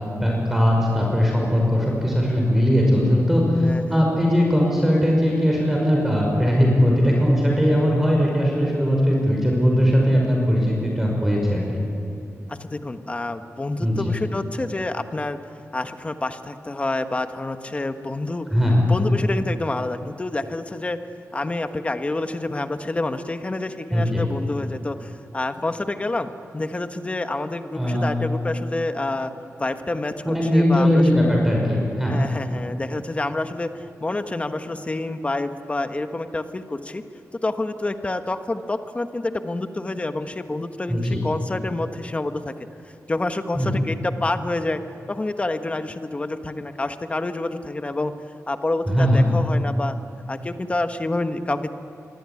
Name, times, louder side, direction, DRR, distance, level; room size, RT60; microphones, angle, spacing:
voice 1, 0.2-11.6 13.8-14.0 18.5-18.9 23.9-24.2 27.7-28.1 30.3-32.1 40.9-41.2 43.5-43.8 48.9-49.2, equal, 5° right, -1 dB, 5.6 m, -19 dB
voice 2, 3.6-4.2 12.5-15.4 15.7-18.5 18.9-21.0 21.3-29.3 29.6-31.3 32.1-37.0 37.4-42.7 43.1-44.8 45.1-48.1 48.5-49.9 50.3-51.7, left 2 dB, 25° left, 8 dB, 1.3 m, -28 dB
26.0 x 23.5 x 9.8 m, 2.8 s
wide cardioid pair, 140°, 5 cm